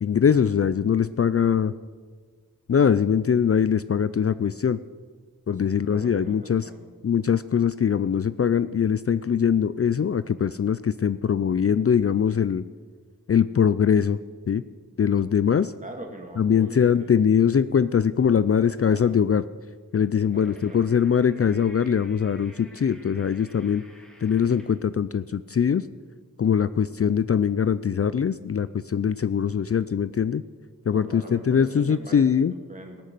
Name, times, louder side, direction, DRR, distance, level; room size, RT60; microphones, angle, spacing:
voice 1, 0.0-1.7 2.7-4.8 5.5-6.7 7.0-12.6 13.3-14.2 14.5-14.6 15.0-15.7 16.4-19.4 19.9-23.8 24.2-25.8 26.4-30.4 30.9-32.5, left 7 dB, 40° left, 15 dB, 0.4 m, -22 dB
voice 2, 5.7-6.8 15.8-17.1 18.5-19.2 20.3-20.8 30.9-32.2 32.7-33.0, right 1 dB, 20° right, 2 dB, 2.4 m, -42 dB
sound 1, 20.2-24.8, equal, 5° left, 2.9 m, -53 dB
19.0 x 6.6 x 7.7 m, 1.5 s
wide cardioid pair, 70°, 35 cm